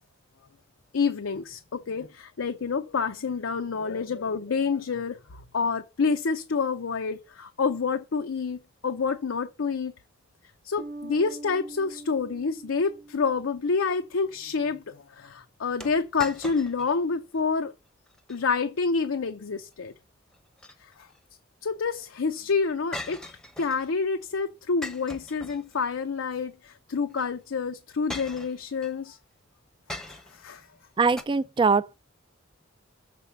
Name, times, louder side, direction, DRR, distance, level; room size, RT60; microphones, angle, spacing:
voice 1, 0.9-9.9 10.6-17.7 18.3-19.9 20.8-21.1 21.6-29.2 30.0-30.7, left 5 dB, 85° left, 0.6 m, -28 dB
sound 1, 10.8-14.1, right 2 dB, 45° right, 0.8 m, -43 dB
sound 2, 15.8-17.0 17.4-17.5 18.1-18.4 20.3-21.2 22.9-23.9 24.8-26.0 27.1-27.3 28.1-29.0 29.9-30.5 31.2-31.3, left 2 dB, 5° left, 0.8 m, -40 dB
voice 2, 31.0-31.9, right 4 dB, 25° right, 0.4 m, -22 dB
7.0 x 4.1 x 5.7 m
head